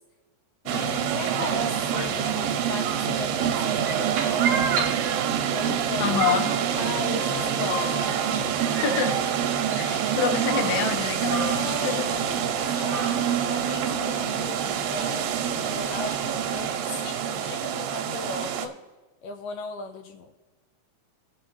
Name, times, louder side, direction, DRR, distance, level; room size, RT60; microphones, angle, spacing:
voice 1, 0.7-4.9 5.5-6.1 6.8-7.9 8.2-8.7 11.5-18.8 19.2-20.3, left 4 dB, 80° left, 5 dB, 2.1 m, -37 dB
sound 1, 0.7-18.7, right 8 dB, 80° right, 2.5 m, -26 dB
sound 2, 3.9-5.6 6.2-10.0, right 2 dB, 65° right, 1.3 m, -35 dB
voice 2, 5.7-6.5 8.7-9.5 9.8-11.5 11.8-12.1 12.7-12.9, left 6 dB, 65° left, 4 dB, 1.6 m, -27 dB
sound 3, 10.3-16.7, right 2 dB, 20° right, 0.8 m, -47 dB
18.0 x 6.3 x 3.1 m, 1.2 s
omnidirectional pair, 4.0 m